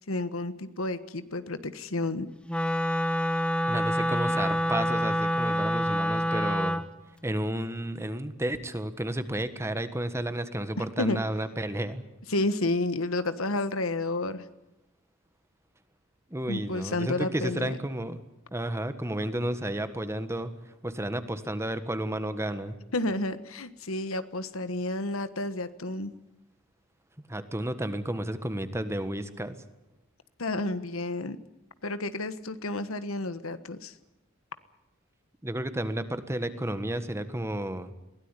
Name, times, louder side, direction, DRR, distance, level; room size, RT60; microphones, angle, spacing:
voice 1, 0.1-2.3 10.8-11.2 12.3-14.4 16.5-17.7 22.9-26.1 30.4-31.4 31.8-33.9, left 2 dB, 80° left, 12 dB, 1.4 m, -31 dB
Wind instrument woodwind instrument, 2.5-6.9, equal, 5° left, 1.4 m, -27 dB
voice 2, 3.7-6.8 7.2-12.0 16.3-18.2 18.5-20.5 20.8-22.8 27.3-29.6 35.4-37.9, right 1 dB, 15° right, 11 dB, 1.5 m, -32 dB
22.0 x 17.0 x 9.9 m, 0.95 s
head